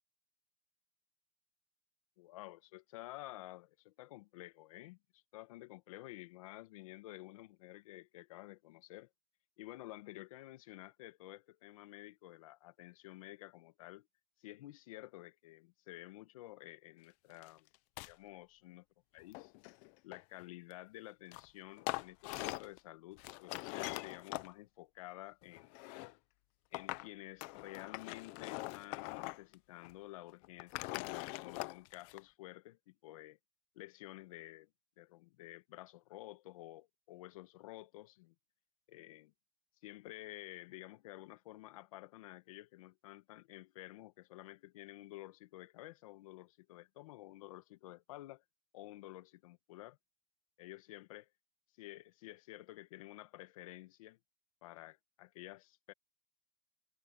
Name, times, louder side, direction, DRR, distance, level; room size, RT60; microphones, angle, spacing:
voice 1, 2.2-9.1 9.6-14.1 14.4-17.7 18.1-18.8 19.1-19.5 20.0-25.8 26.7-33.4 33.7-34.7 35.0-38.3 38.9-39.3 39.8-48.4 48.7-50.0 50.6-51.3 51.8-54.2 54.6-55.9, left 17 dB, 70° left, 1.3 m, -52 dB
sound 1, 17.4-17.5 17.7-18.1 19.2-20.4 21.3-21.5 21.8-22.8 23.2-24.5 25.4-26.1 26.7-27.1 27.4-29.5 29.8-29.9 30.4-32.2, left 22 dB, 40° left, 0.7 m, -43 dB
supercardioid pair, 170°, 19 cm